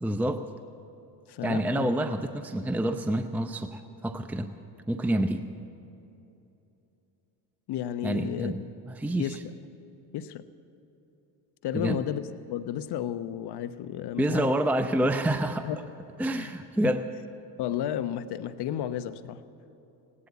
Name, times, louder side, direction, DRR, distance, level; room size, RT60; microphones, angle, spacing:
voice 1, 0.0-0.4 1.4-4.5 4.9-5.4 8.0-8.6 8.9-9.4 11.7-12.0 14.2-15.7 16.2-17.0, right 1 dB, 5° right, 0.6 m, -27 dB
voice 2, 1.3-1.9 7.7-8.7 9.2-9.4 10.1-10.4 11.6-14.5 15.6-15.8 16.3-16.5 16.8-16.9 17.6-19.4, left 10 dB, 60° left, 0.9 m, -32 dB
17.5 x 9.9 x 8.1 m
supercardioid pair, 65°, 46 cm